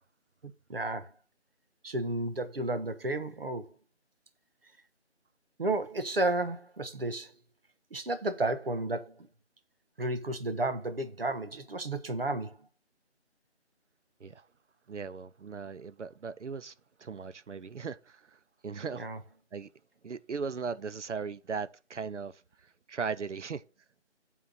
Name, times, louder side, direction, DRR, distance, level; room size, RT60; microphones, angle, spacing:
voice 1, 0.4-1.1 1.8-3.7 5.6-7.3 7.9-9.3 10.0-12.6 19.0-19.2, right 2 dB, 55° right, 1.2 m, -32 dB
voice 2, 14.9-19.1 19.5-19.7 20.0-23.6, right 5 dB, 80° right, 0.7 m, -38 dB
8.7 x 3.7 x 6.2 m
figure-of-eight pair, 175°, 35 cm